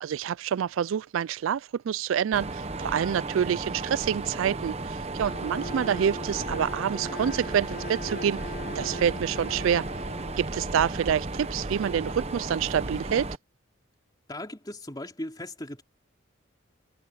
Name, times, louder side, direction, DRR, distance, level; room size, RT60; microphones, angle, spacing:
voice 1, 0.0-8.4 8.7-9.9 10.4-13.3, right 8 dB, 75° right, 0.3 m, -27 dB
Mechanisms, 2.3-13.4, right 2 dB, 30° right, 1.0 m, -34 dB
Bowed string instrument, 5.1-11.1, left 1 dB, 45° left, 6.2 m, -41 dB
voice 2, 14.3-15.8, left 1 dB, 20° left, 3.5 m, -37 dB
head